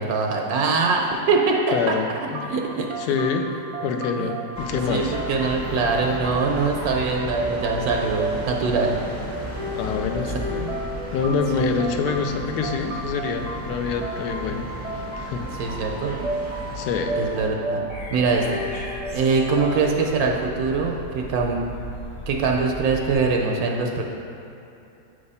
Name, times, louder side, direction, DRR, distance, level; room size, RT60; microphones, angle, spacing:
voice 1, 0.0-1.5 2.5-2.9 4.2-4.3 4.9-5.0 5.3-9.0 11.5-11.7 15.6-16.2 17.2-17.8 18.1-18.6 19.1-21.6 22.3-24.0, right 4 dB, 75° right, 1 dB, 1.1 m, -23 dB
voice 2, 1.7-2.5 3.0-3.5 3.8-5.1 9.8-10.7 11.1-14.7 15.2-15.5 16.7-17.2, left 5 dB, 80° left, 4 dB, 1.1 m, -26 dB
sound 1, 2.3-20.1, right 1 dB, 35° right, 0.6 m, -33 dB
sound 2, 4.5-17.5, equal, 10° left, 0.8 m, -34 dB
sound 3, 17.9-23.3, right 2 dB, 50° left, 1.1 m, -37 dB
7.8 x 3.4 x 5.4 m, 2.8 s
omnidirectional pair, 1.7 m